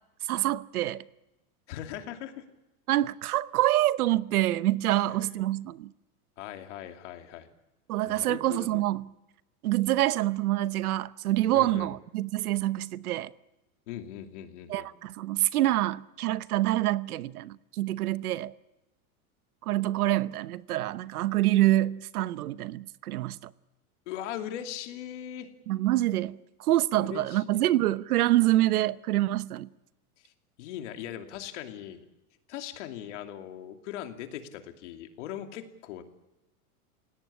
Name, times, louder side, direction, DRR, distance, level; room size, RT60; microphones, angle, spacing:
voice 1, 0.3-1.0 2.9-5.9 7.9-9.0 9.6-13.3 14.7-18.5 19.7-23.4 25.7-26.4 26.7-29.7, right 15 dB, 75° right, 1.0 m, -26 dB
voice 2, 1.7-2.4 5.0-5.4 6.4-7.5 8.1-8.8 11.5-11.9 13.9-14.9 21.4-21.5 24.1-25.5 26.9-27.6 30.2-30.3 30.6-32.0 32.5-36.0, left 11 dB, 50° left, 2.8 m, -40 dB
29.0 x 17.5 x 8.5 m
supercardioid pair, 180°, 45 cm